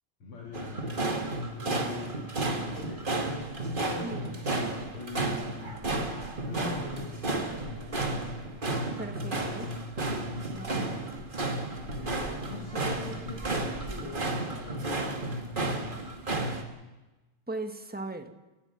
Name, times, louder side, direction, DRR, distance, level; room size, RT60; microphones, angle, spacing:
voice 1, 0.2-2.3 2.7-5.9 6.4-8.1 10.7-11.0 11.9-15.7, left 3 dB, 85° left, -2 dB, 3.8 m, -43 dB
sound 1, 0.5-16.6, right 2 dB, 25° right, 2.0 m, -32 dB
voice 2, 9.0-9.7 10.5-11.1 17.5-18.3, right 2 dB, 5° right, 6 dB, 1.1 m, -38 dB
29.0 x 17.5 x 6.0 m, 1.1 s
omnidirectional pair, 2.4 m